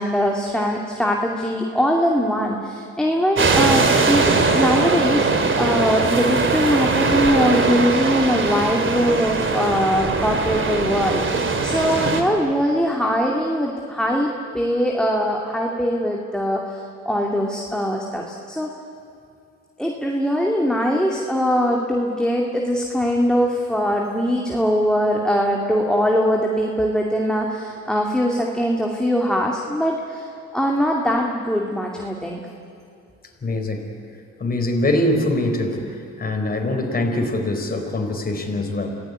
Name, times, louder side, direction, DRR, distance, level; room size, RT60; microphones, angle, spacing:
voice 1, 0.0-18.7 19.8-32.4, equal, 5° left, -1 dB, 2.5 m, -22 dB
sound 1, 3.4-12.2, right 4 dB, 40° right, 2.8 m, -20 dB
voice 2, 33.4-33.9 34.4-35.8 36.2-39.0, left 1 dB, 30° left, 3 dB, 4.2 m, -23 dB
27.5 x 17.5 x 9.6 m, 2.4 s
cardioid pair, 90°, 30 cm